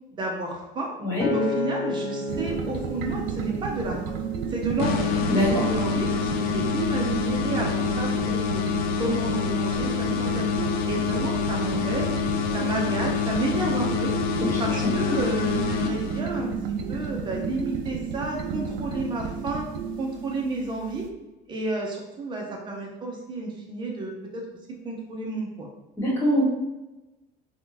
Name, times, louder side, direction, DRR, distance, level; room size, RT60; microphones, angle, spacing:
voice 1, 0.2-0.9 1.3-4.0 4.5-5.1 5.5-8.6 9.0-12.1 12.5-14.1 14.6-19.7 20.0-21.1 21.5-24.4 24.8-25.7, right 2 dB, 25° right, -1 dB, 0.7 m, -31 dB
Acoustic guitar, 1.2-5.5 6.1-6.4, left 3 dB, 85° left, 0.8 m, -33 dB
sound 1, 2.3-21.1, right 6 dB, 85° right, 0.4 m, -32 dB
sound 2, 4.8-16.5, left 7 dB, 55° left, 0.4 m, -27 dB
voice 2, 5.3-5.6 14.4-14.6 26.0-26.4, equal, 15° left, -8 dB, 1.4 m, -23 dB
3.4 x 2.3 x 2.9 m, 1.0 s
cardioid pair, 160°, 18 cm